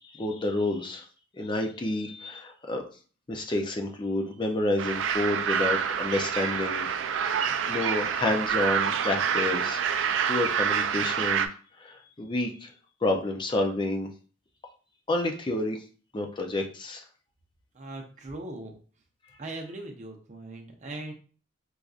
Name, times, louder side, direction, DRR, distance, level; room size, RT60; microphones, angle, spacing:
voice 1, 0.1-1.1 1.4-2.8 3.3-6.9 7.2-9.8 10.3-11.5 11.8-12.7 13.0-14.1 15.1-15.8 16.1-17.0, left 2 dB, 25° left, 3 dB, 0.5 m, -29 dB
sound 1, 4.8-11.5, right 7 dB, 70° right, 0.4 m, -27 dB
voice 2, 17.7-18.7 19.4-21.1, right 2 dB, 35° right, 2 dB, 0.7 m, -39 dB
4.6 x 2.6 x 2.4 m, 0.40 s
head